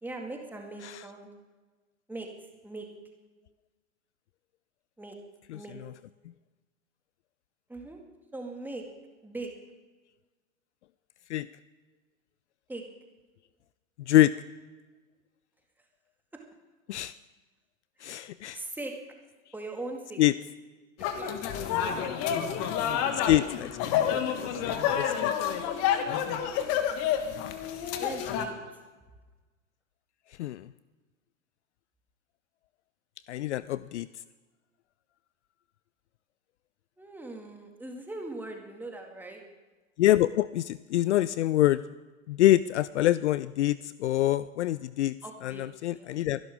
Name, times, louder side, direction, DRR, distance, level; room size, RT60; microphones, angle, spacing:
voice 1, 0.0-1.3 2.1-2.3 2.6-2.9 5.0-5.2 5.5-5.8 7.7-8.0 8.3-8.8 9.2-9.5 12.7-12.8 18.5-18.9 19.5-20.2 21.1-21.3 21.9-22.0 26.8-27.1 28.0-28.5 37.0-39.4 45.2-45.6 45.9-46.1, right 2 dB, 5° right, 2 dB, 2.1 m, -40 dB
voice 2, 5.5-5.9 11.3-11.5 14.1-14.3 16.9-17.1 18.0-18.6 20.2-20.3 23.2-25.3 30.4-30.7 33.3-34.1 40.0-41.8 42.3-45.2 45.4-46.4, left 14 dB, 60° left, 17 dB, 0.5 m, -26 dB
sound 1, 21.0-28.5, left 9 dB, 35° left, 1.4 m, -29 dB
23.0 x 11.5 x 3.6 m, 1.3 s
figure-of-eight pair, 100°, 40 cm